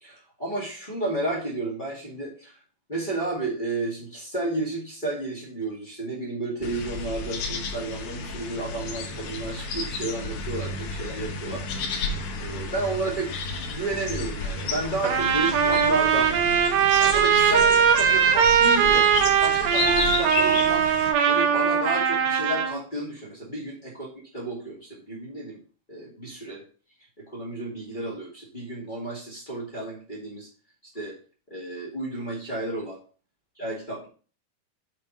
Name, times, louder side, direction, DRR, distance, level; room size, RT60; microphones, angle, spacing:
voice 1, 0.0-2.6 2.9-11.6 11.9-16.3 16.8-20.9 21.2-24.1 24.3-25.6 25.9-26.6 27.3-30.5 30.9-31.1 31.5-33.0 33.6-34.1, right 2 dB, 25° left, -5 dB, 1.0 m, -32 dB
sound 1, 6.6-21.1, left 4 dB, 65° left, 2.3 m, -32 dB
Trumpet, 15.0-22.8, right 7 dB, 75° right, 2.6 m, -20 dB
7.2 x 4.5 x 5.5 m, 0.40 s
omnidirectional pair, 4.7 m